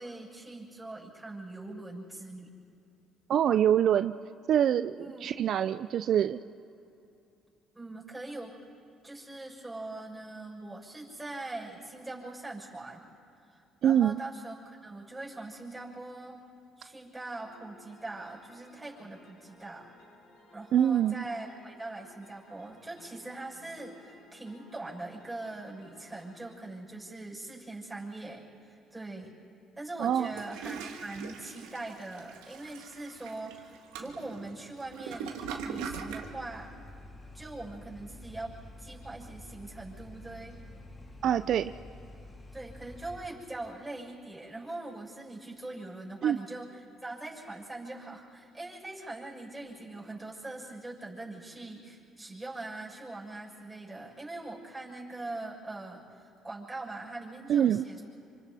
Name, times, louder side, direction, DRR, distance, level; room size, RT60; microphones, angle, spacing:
voice 1, 0.0-2.5 5.0-5.3 7.7-8.6 9.0-13.0 13.4-16.4 16.8-19.9 20.5-29.3 29.8-36.8 37.3-40.6 42.5-58.0, right 2 dB, 10° right, -4 dB, 6.4 m, -42 dB
voice 2, 3.3-4.1 4.5-6.4 13.8-14.2 20.7-21.2 30.0-30.3 41.2-41.7 46.2-46.4 57.5-57.8, right 10 dB, 65° right, 11 dB, 0.4 m, -25 dB
sound 1, 17.4-26.5, left 2 dB, 90° left, 6.4 m, -58 dB
Toilet flush, 30.1-36.3, right 6 dB, 90° right, 1.7 m, -41 dB
sound 2, 36.2-43.3, left 2 dB, 25° left, 3.0 m, -49 dB
28.5 x 25.5 x 4.2 m, 2.7 s
supercardioid pair, 80°, 0 cm